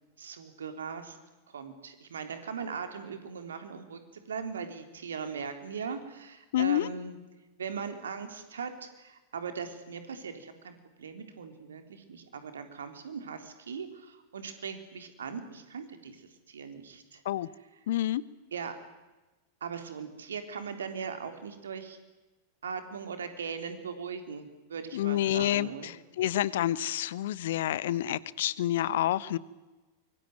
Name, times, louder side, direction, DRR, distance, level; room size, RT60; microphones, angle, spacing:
voice 1, 0.2-1.2 1.5-7.2 7.6-17.2 18.5-18.8 19.6-22.0 22.6-25.9, right 6 dB, 65° right, 7 dB, 3.6 m, -39 dB
voice 2, 6.5-6.9 17.2-17.5 17.9-18.2 24.9-29.4, left 13 dB, 55° left, 20 dB, 1.0 m, -28 dB
24.5 x 23.5 x 9.5 m, 1.1 s
figure-of-eight pair, 90°, 0 cm